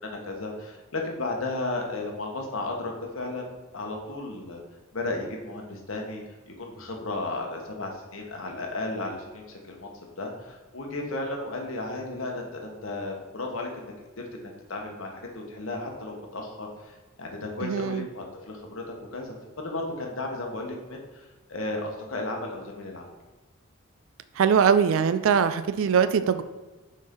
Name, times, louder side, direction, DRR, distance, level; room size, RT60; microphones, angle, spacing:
voice 1, 0.0-3.5 3.7-4.6 4.9-9.9 10.2-18.8 19.1-23.1, left 2 dB, 70° left, 1 dB, 1.2 m, -34 dB
voice 2, 17.6-18.0 24.4-26.4, right 7 dB, 70° right, 12 dB, 0.4 m, -22 dB
6.1 x 4.4 x 3.7 m, 1.2 s
head